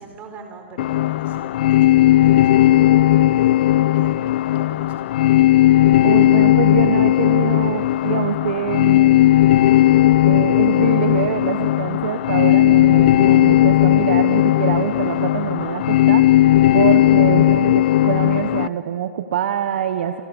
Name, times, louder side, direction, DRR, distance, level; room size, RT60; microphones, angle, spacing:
voice 1, 0.0-3.6 3.9-4.1 4.5-5.1, right 4 dB, 25° right, 5 dB, 4.5 m, -43 dB
sound 1, 0.8-18.7, left 14 dB, 55° left, 0.6 m, -16 dB
voice 2, 6.0-9.4 10.2-16.4 16.7-20.2, right 9 dB, 55° right, 9 dB, 1.3 m, -24 dB
29.5 x 28.0 x 7.3 m, 2.3 s
hypercardioid pair, 140°, 7 cm